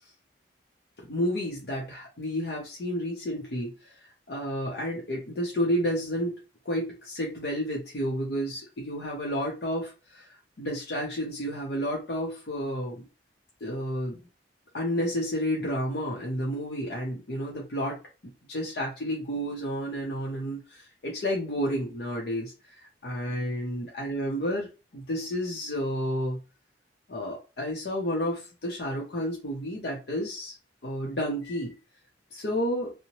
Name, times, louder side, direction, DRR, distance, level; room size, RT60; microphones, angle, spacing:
voice 1, 1.0-6.4 6.6-13.0 13.6-14.2 14.7-18.0 18.5-24.7 24.9-26.4 27.1-30.6 30.8-31.7 32.3-32.9, equal, 60° left, -2 dB, 0.6 m, -31 dB
2.8 x 2.1 x 2.9 m, 0.30 s
head